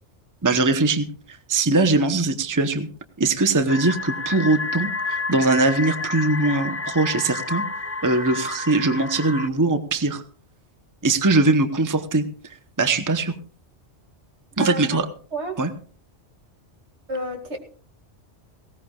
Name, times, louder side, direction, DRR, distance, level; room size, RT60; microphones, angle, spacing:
voice 1, 0.4-2.9 3.2-7.6 8.0-10.2 11.0-13.4 14.6-15.1 15.6-15.7, right 3 dB, 20° right, 8 dB, 0.9 m, -21 dB
sound 1, 3.7-9.5, left 3 dB, 15° left, 0.5 m, -30 dB
voice 2, 14.5-15.0 15.3-15.6 17.1-17.6, right 1 dB, 75° right, 3 dB, 2.8 m, -30 dB
19.0 x 17.5 x 2.4 m, 0.43 s
omnidirectional pair, 1.2 m